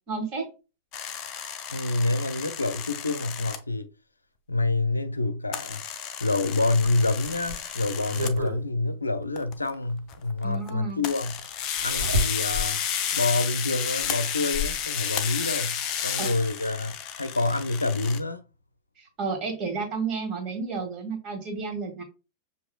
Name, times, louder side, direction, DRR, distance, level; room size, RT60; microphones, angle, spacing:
voice 1, 0.1-0.5 10.4-11.0 11.9-12.0 16.2-16.3 19.0-22.0, right 4 dB, 35° right, 1.8 m, -32 dB
sound 1, 0.9-3.6 5.5-8.4 9.4-9.7 10.1-10.7 11.0-18.2, left 8 dB, 35° left, 0.6 m, -32 dB
voice 2, 1.7-3.9 4.5-5.8 6.2-11.4 11.8-12.8 13.1-18.4, left 2 dB, 80° left, 0.4 m, -27 dB
Zipper (clothing), 6.8-8.6 10.0-10.1 11.8-12.7 13.2-13.3 14.0-14.8 16.0-16.1 16.5-16.6, left 1 dB, 80° right, 1.7 m, -31 dB
7.2 x 2.7 x 2.3 m
figure-of-eight pair, 90°, 0 cm